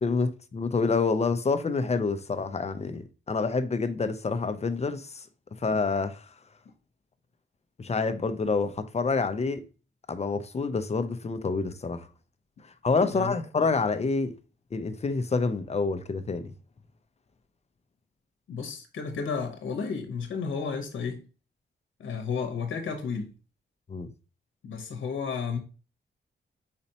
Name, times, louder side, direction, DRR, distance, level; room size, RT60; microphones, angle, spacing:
voice 1, 0.0-5.3 5.6-6.3 7.8-9.6 10.1-12.1 12.6-14.3 14.7-16.5 23.9-24.1, left 4 dB, 35° left, 0.5 m, -27 dB
voice 2, 18.5-21.2 22.0-23.3 24.6-25.6, left 5 dB, 80° left, 0.9 m, -32 dB
4.2 x 4.2 x 2.8 m
cardioid pair, 85°, 20 cm